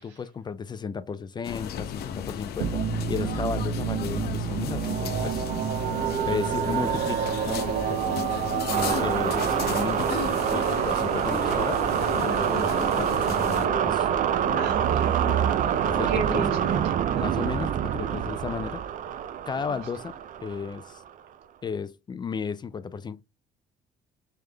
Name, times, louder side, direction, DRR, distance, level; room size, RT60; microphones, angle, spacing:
voice 1, 0.0-2.8 3.1-5.4 6.2-11.8 12.2-14.1 15.8-16.6 17.2-18.8 19.5-20.1 20.4-21.0 21.6-23.2, left 6 dB, 25° left, 0.3 m, -34 dB
sound 1, 1.4-13.7, left 9 dB, 70° left, 0.6 m, -35 dB
sound 2, 2.6-21.1, right 9 dB, 50° right, 0.5 m, -26 dB
voice 2, 6.3-6.6 14.6-15.5 15.9-17.3 19.7-19.8, right 5 dB, 85° right, 1.6 m, -34 dB
sound 3, 7.8-16.5, left 2 dB, 50° left, 1.5 m, -41 dB
3.5 x 3.3 x 3.3 m
cardioid pair, 110°, 17 cm